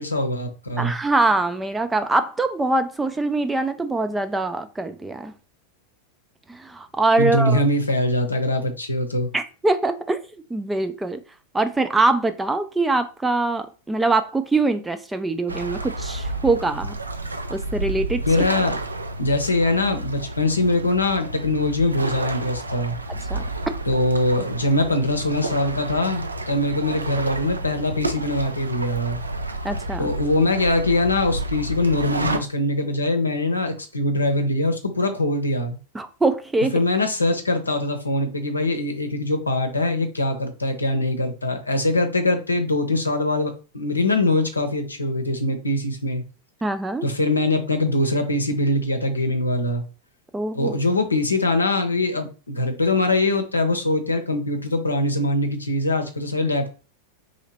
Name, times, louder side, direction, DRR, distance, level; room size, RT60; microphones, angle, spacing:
voice 1, 0.0-0.9 7.2-9.3 18.3-18.8 19.2-22.9 23.9-29.2 30.0-35.8 36.7-46.2 47.0-49.8 50.5-56.7, left 2 dB, 80° left, 0.7 m, -22 dB
voice 2, 0.8-5.3 6.5-7.6 9.3-10.2 10.5-11.2 11.5-17.0 17.5-18.2 23.1-23.4 29.6-30.1 35.9-36.8 46.6-47.1 50.3-50.7, right 2 dB, 10° right, 0.4 m, -23 dB
sound 1, 15.5-32.4, right 2 dB, 80° right, 0.4 m, -30 dB
3.1 x 2.9 x 4.1 m
figure-of-eight pair, 90°, 0 cm